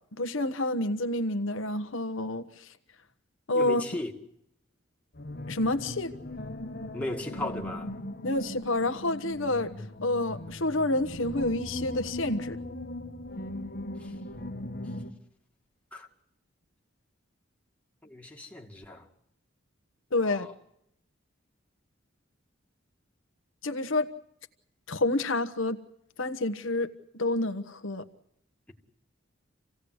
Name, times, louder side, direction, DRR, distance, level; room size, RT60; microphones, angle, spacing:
voice 1, 0.2-2.4 3.5-3.8 5.5-6.1 8.2-9.7 10.0-12.6 20.1-20.5 23.6-24.1 24.9-25.8 26.2-26.9 27.2-28.0, left 2 dB, 80° left, 1.2 m, -28 dB
voice 2, 3.5-4.1 6.9-7.9 14.0-14.1 15.9-16.1 18.0-19.1 20.2-20.5, left 1 dB, 5° left, 2.3 m, -36 dB
sound 1, 5.1-15.1, left 1 dB, 50° left, 1.4 m, -39 dB
27.5 x 17.0 x 8.0 m
head